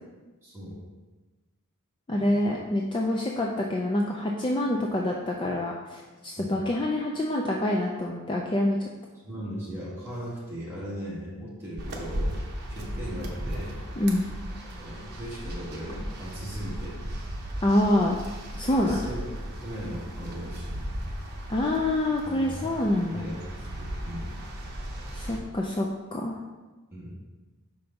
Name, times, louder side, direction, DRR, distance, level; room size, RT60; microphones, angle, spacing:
voice 1, 0.4-0.8 2.2-2.3 6.4-6.7 9.2-12.4 12.7-13.8 14.6-16.9 18.7-19.2 19.6-20.8 22.2-22.7 23.1-24.4 26.9-27.2, equal, 10° right, -8 dB, 2.1 m, -38 dB
voice 2, 2.1-8.9 14.0-14.3 17.6-18.2 18.6-19.0 21.5-23.4 25.1-26.4, left 1 dB, 20° left, -1 dB, 0.4 m, -26 dB
sound 1, 11.8-25.4, equal, 45° right, 0.9 m, -36 dB
5.7 x 5.1 x 4.0 m, 1.2 s
head